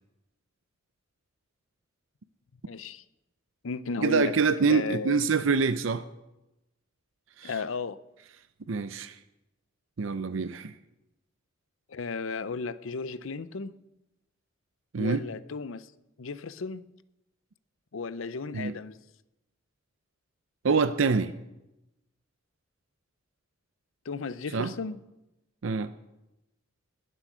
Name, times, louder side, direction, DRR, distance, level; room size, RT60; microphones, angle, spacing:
voice 1, 2.7-3.0 3.6-4.3 4.7-5.2 7.4-8.0 11.9-13.7 15.0-15.9 16.2-16.9 17.9-19.0 24.1-25.0, left 4 dB, 70° left, 0.6 m, -34 dB
voice 2, 4.0-6.0 7.4-7.5 8.7-9.2 10.0-10.7 14.9-15.2 18.5-18.7 20.6-21.3 24.5-24.7 25.6-25.9, right 5 dB, 70° right, 0.6 m, -25 dB
20.0 x 7.7 x 6.2 m
head